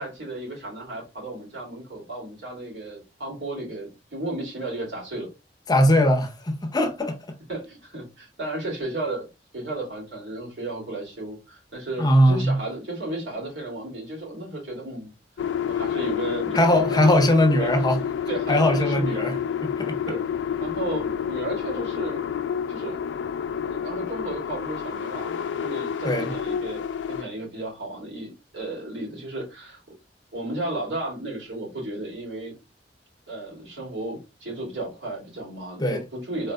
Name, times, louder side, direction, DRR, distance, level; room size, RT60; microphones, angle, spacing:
voice 1, 0.0-5.3 7.5-9.3 9.5-15.1 15.7-17.2 17.6-17.9 18.3-19.3 20.1-20.2 20.6-22.2 22.7-23.0 23.6-29.8 30.3-32.5 33.3-36.5, right 2 dB, 75° right, 2.5 m, -34 dB
voice 2, 5.7-7.3 12.0-12.6 16.5-18.0 18.5-19.4 19.8-20.0 26.0-26.3 35.8-36.0, equal, 25° left, 0.7 m, -20 dB
sound 1, 15.4-27.2, left 8 dB, 80° left, 0.3 m, -29 dB
4.2 x 3.7 x 2.2 m
head